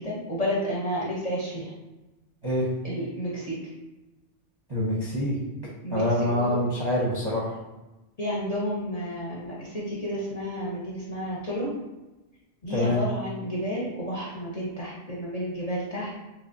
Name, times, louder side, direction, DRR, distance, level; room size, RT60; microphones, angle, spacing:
voice 1, 0.0-1.7 2.8-3.6 5.8-6.0 6.4-6.6 8.2-11.7 12.6-16.2, equal, 40° left, -7 dB, 0.7 m, -31 dB
voice 2, 4.7-5.4 5.9-7.5 12.7-13.0, left 1 dB, 25° right, -6 dB, 0.6 m, -25 dB
3.2 x 3.1 x 2.6 m, 1.1 s
omnidirectional pair, 1.3 m